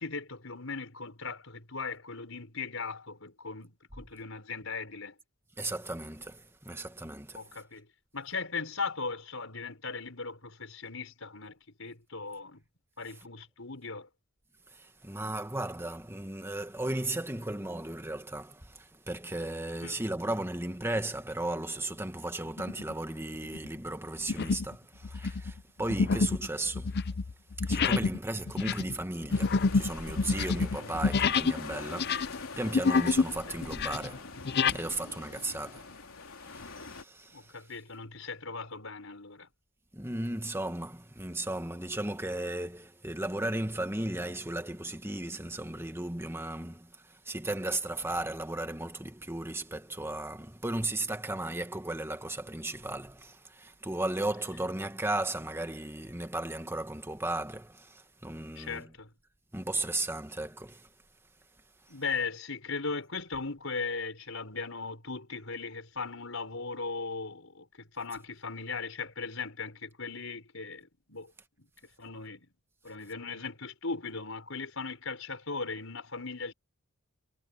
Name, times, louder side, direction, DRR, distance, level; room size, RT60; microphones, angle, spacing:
voice 1, 0.0-5.2 7.3-7.9 8.1-12.6 13.0-14.1 19.8-20.0 30.6-30.9 33.5-33.6 37.3-39.5 58.6-59.1 61.9-71.3 71.6-71.7 72.0-72.5 72.8-76.5, left 4 dB, 70° left, 5.9 m, -38 dB
voice 2, 5.6-7.6 14.7-27.0 27.6-36.0 36.4-37.6 39.9-58.9 59.5-60.9 61.9-62.0, right 2 dB, 10° right, 1.6 m, -35 dB
sound 1, 22.6-22.9 23.4-23.7 24.3-24.7 25.0-31.6 31.9-33.3 33.6-34.8, left 4 dB, 50° left, 0.6 m, -28 dB
sound 2, 29.3-37.0, left 4 dB, 85° left, 3.2 m, -44 dB
head